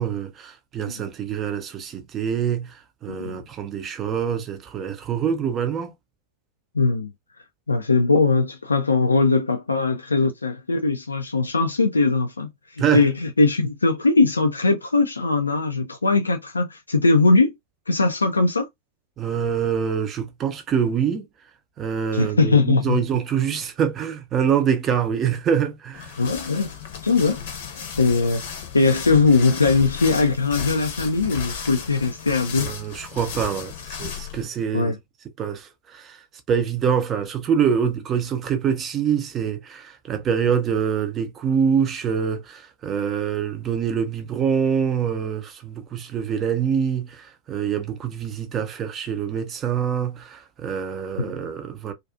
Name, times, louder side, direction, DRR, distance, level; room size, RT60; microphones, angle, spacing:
voice 1, 0.0-5.9 12.8-13.1 19.2-21.3 21.8-26.2 32.6-34.9 35.4-36.2 36.5-51.9, right 7 dB, 30° right, 0.5 m, -25 dB
voice 2, 3.1-3.4 6.7-7.1 7.7-17.5 17.9-18.7 22.1-23.0 26.2-26.7 27.0-32.7 34.7-35.0 51.2-51.3, left 3 dB, 80° left, 0.3 m, -20 dB
sound 1, 25.9-34.5, left 7 dB, 55° left, 0.7 m, -34 dB
2.5 x 2.3 x 2.3 m
figure-of-eight pair, 90°, 0 cm